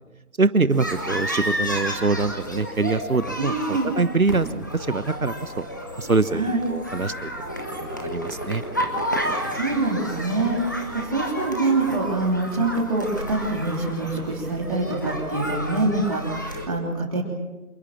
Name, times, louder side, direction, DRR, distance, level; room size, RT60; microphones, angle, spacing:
voice 1, 0.4-5.6 6.0-7.3 7.8-8.6, right 3 dB, 65° right, 13 dB, 1.3 m, -24 dB
sound 1, 0.7-16.7, equal, 15° left, 1.4 m, -31 dB
voice 2, 3.4-3.9 6.3-6.6 9.2-17.2, right 2 dB, 25° right, -7 dB, 3.5 m, -25 dB
27.5 x 23.0 x 7.5 m, 1.1 s
figure-of-eight pair, 170°, 45 cm